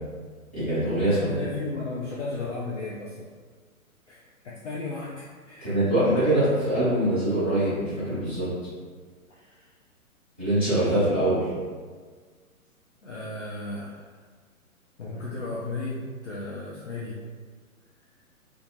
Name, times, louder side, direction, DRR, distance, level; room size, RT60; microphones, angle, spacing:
voice 1, 0.5-1.3 5.6-8.5 10.4-11.5, right 1 dB, 10° left, -18 dB, 0.4 m, -23 dB
voice 2, 1.0-3.3 4.1-5.7 9.3-9.7 13.0-14.2 15.0-17.2, left 3 dB, 55° left, -6 dB, 0.5 m, -35 dB
2.6 x 2.5 x 2.7 m, 1.5 s
figure-of-eight pair, 120°, 43 cm